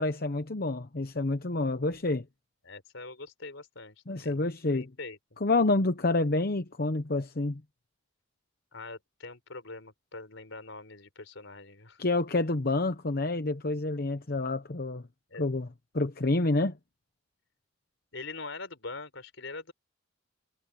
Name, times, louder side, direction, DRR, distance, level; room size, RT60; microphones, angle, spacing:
voice 1, 0.0-2.2 4.1-4.9 5.4-7.6 12.0-15.0 15.4-15.7 15.9-16.8, left 2 dB, 50° left, 0.9 m, -28 dB
voice 2, 2.6-4.4 4.7-5.2 8.7-12.0 15.3-15.4 18.1-19.7, left 3 dB, 70° left, 4.2 m, -43 dB
head